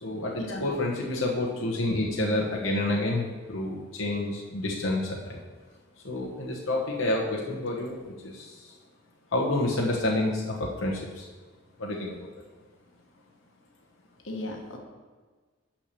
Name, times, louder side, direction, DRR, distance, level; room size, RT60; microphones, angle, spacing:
voice 1, 0.0-5.4 6.0-8.7 9.3-11.3 11.8-12.3, left 1 dB, 90° left, -3 dB, 1.2 m, -29 dB
voice 2, 14.2-14.8, left 1 dB, 70° left, 1 dB, 1.4 m, -35 dB
5.9 x 5.7 x 6.8 m, 1.4 s
head